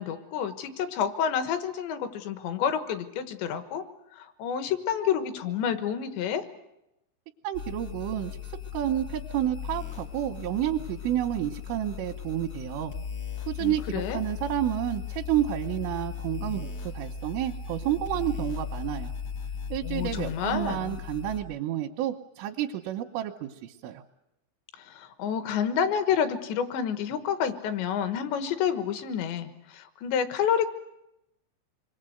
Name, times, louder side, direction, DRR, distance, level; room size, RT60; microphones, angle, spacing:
voice 1, 0.0-3.9 4.1-6.5 13.6-14.2 19.8-21.0 24.7-30.7, left 8 dB, 70° left, 9 dB, 3.4 m, -29 dB
voice 2, 7.4-8.4 8.7-12.9 13.5-16.7 17.0-19.1 19.7-24.0, right 12 dB, 85° right, 1 dB, 3.6 m, -30 dB
sound 1, 7.5-21.4, left 8 dB, 45° left, 1.1 m, -37 dB
27.0 x 21.5 x 7.9 m, 0.90 s
omnidirectional pair, 5.6 m